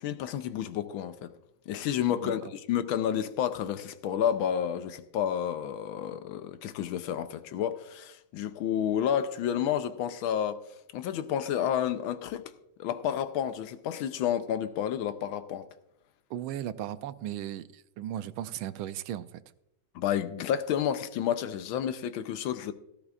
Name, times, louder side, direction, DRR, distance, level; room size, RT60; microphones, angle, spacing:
voice 1, 0.0-1.3 1.7-10.6 10.9-12.5 12.8-15.7 19.9-22.7, left 9 dB, 80° left, 1.5 m, -30 dB
voice 2, 16.3-19.3, right 11 dB, 80° right, 1.4 m, -36 dB
17.0 x 14.0 x 2.4 m
omnidirectional pair, 2.2 m